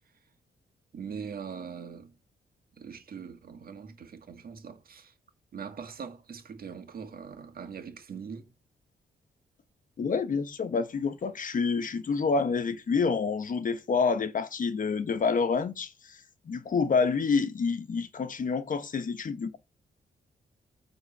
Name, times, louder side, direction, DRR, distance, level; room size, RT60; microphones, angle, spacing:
voice 1, 0.9-2.1 2.8-5.1 5.5-8.5, right 6 dB, 60° right, 1.8 m, -42 dB
voice 2, 10.0-16.2 16.5-19.6, left 5 dB, 50° left, 1.1 m, -28 dB
9.6 x 3.8 x 7.2 m
wide cardioid pair, 135°, 18 cm